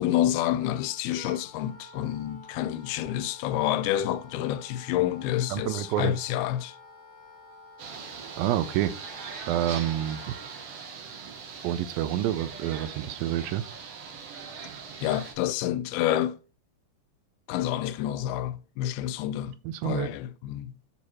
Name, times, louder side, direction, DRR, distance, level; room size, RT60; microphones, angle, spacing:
voice 1, 0.0-6.8 15.0-16.4 17.5-19.6 19.8-20.9, left 12 dB, 90° left, 2.5 m, -28 dB
Wind instrument woodwind instrument, 0.6-10.6, left 2 dB, 30° right, 3.0 m, -50 dB
voice 2, 5.5-6.2 8.4-8.9 9.5-10.4 11.6-13.6 19.6-20.1, right 12 dB, 80° right, 2.2 m, -28 dB
sound 1, 7.8-15.3, right 6 dB, 60° right, 1.5 m, -41 dB
9.8 x 4.6 x 4.1 m
omnidirectional pair, 4.3 m